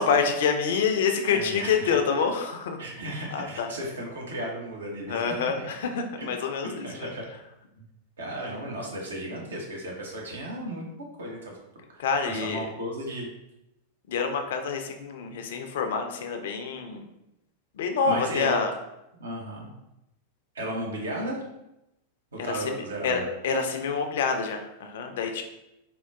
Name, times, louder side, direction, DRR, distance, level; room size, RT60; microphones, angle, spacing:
voice 1, 0.0-2.8 3.3-3.7 5.1-7.1 12.0-12.6 14.1-17.0 17.8-18.7 22.4-22.8 23.0-25.4, left 5 dB, 55° left, 5 dB, 0.3 m, -27 dB
voice 2, 1.3-2.0 2.8-5.7 6.2-6.3 6.8-7.2 7.7-7.9 8.2-10.9 11.2-11.6 11.9-13.3 18.0-18.6 19.2-19.7 20.5-21.4 22.3-23.3, right 1 dB, 70° right, -1 dB, 0.6 m, -35 dB
3.7 x 2.1 x 2.2 m, 0.89 s
figure-of-eight pair, 90°, 0 cm